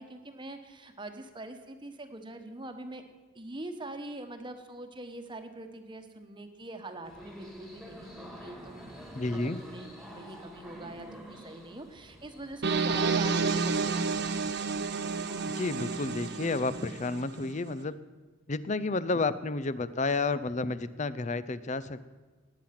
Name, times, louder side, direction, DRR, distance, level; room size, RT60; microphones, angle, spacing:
voice 1, 0.0-3.0 3.3-14.6, right 2 dB, 25° right, 7 dB, 1.2 m, -44 dB
sound 1, 7.0-16.9, equal, ahead, 1.9 m, -49 dB
voice 2, 9.1-9.6 15.5-18.0 18.5-22.0, left 3 dB, 35° left, 15 dB, 0.6 m, -31 dB
sound 2, 12.6-17.5, right 4 dB, 55° right, 0.9 m, -30 dB
19.0 x 8.8 x 5.9 m, 1.3 s
head